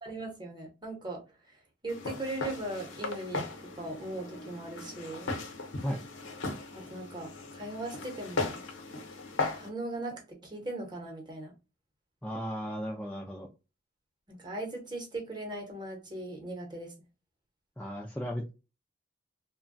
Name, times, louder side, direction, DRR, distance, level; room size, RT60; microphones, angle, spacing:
voice 1, 0.0-5.3 6.7-8.6 9.5-11.5 14.3-16.9, right 2 dB, 20° right, 0.8 m, -39 dB
Walk footsteps, 1.9-9.7, left 3 dB, 90° left, 0.7 m, -37 dB
voice 2, 12.2-13.5 17.8-18.5, equal, 5° left, 0.3 m, -35 dB
3.0 x 2.2 x 2.5 m
head